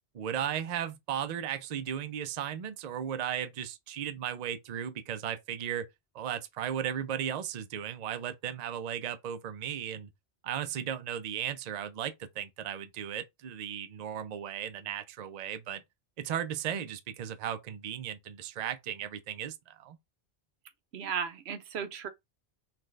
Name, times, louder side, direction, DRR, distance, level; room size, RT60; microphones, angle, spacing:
voice 1, 0.1-5.9 6.1-10.1 10.4-15.8 16.2-20.0, right 9 dB, 50° right, 0.6 m, -36 dB
voice 2, 20.9-22.1, right 7 dB, 85° right, 1.0 m, -35 dB
5.9 x 2.2 x 3.2 m
omnidirectional pair, 1.0 m